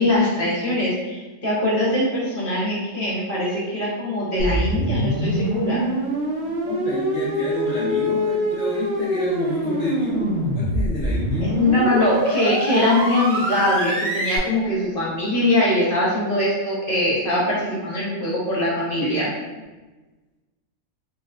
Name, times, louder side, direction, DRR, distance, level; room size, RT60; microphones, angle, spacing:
voice 1, 0.0-5.9 11.5-19.3, left 1 dB, 45° left, -7 dB, 0.8 m, -22 dB
sound 1, 4.4-14.4, equal, 65° right, 0.7 m, -24 dB
voice 2, 6.6-11.6, left 2 dB, 80° left, -8 dB, 1.2 m, -29 dB
4.2 x 2.0 x 2.3 m, 1.2 s
omnidirectional pair, 1.5 m